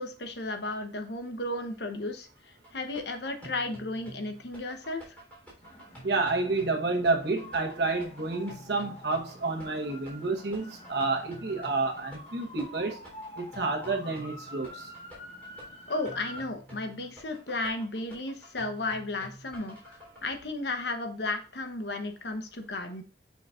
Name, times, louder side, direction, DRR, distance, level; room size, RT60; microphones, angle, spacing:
voice 1, 0.0-5.1 15.9-23.0, left 2 dB, 70° left, 1.0 m, -34 dB
sound 1, 2.6-20.2, right 1 dB, 10° left, 3.5 m, -50 dB
Fire Engine with Siren Passes, 5.6-16.5, left 1 dB, 35° left, 1.5 m, -47 dB
voice 2, 6.0-13.0 13.4-14.9, right 3 dB, 65° right, 1.2 m, -29 dB
7.7 x 5.8 x 2.5 m
head